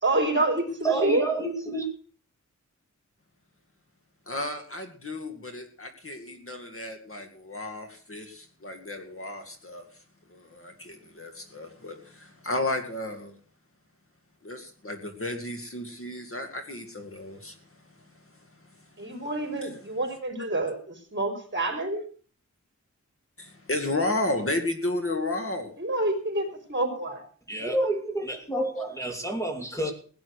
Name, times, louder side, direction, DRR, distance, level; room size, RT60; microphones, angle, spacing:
voice 1, 0.0-1.2 19.0-20.8 21.1-22.0 25.8-27.2, right 2 dB, 40° right, 4 dB, 4.2 m, -27 dB
voice 2, 0.8-1.9 27.5-29.9, right 2 dB, 10° left, 3 dB, 2.8 m, -28 dB
voice 3, 4.3-9.9 10.3-13.3 14.4-17.6 19.6-19.8 23.4-25.7, left 2 dB, 45° left, 6 dB, 2.2 m, -33 dB
17.0 x 9.3 x 6.4 m, 0.43 s
wide cardioid pair, 90°, 30 cm